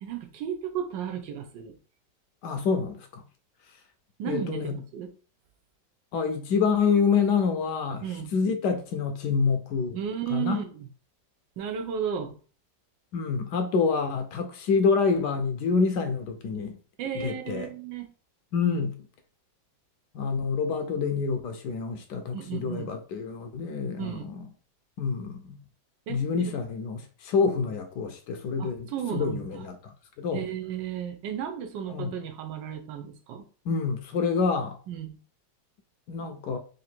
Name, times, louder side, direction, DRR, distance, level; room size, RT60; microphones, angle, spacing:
voice 1, 0.0-1.8 4.2-5.1 8.0-8.3 9.9-10.9 11.6-12.3 17.0-18.1 22.3-22.9 24.0-24.3 26.1-26.5 28.6-29.6 30.3-33.4 34.9-35.2, right 8 dB, 85° right, 1.4 m, -34 dB
voice 2, 2.4-3.2 4.3-4.8 6.1-8.0 8.3-10.0 10.3-10.6 13.1-16.8 17.1-17.7 18.5-18.9 20.1-24.4 25.0-25.6 26.1-29.8 30.2-30.4 31.9-32.2 33.6-34.8 36.1-36.6, left 5 dB, 75° left, 1.2 m, -27 dB
3.8 x 2.6 x 4.3 m
omnidirectional pair, 1.9 m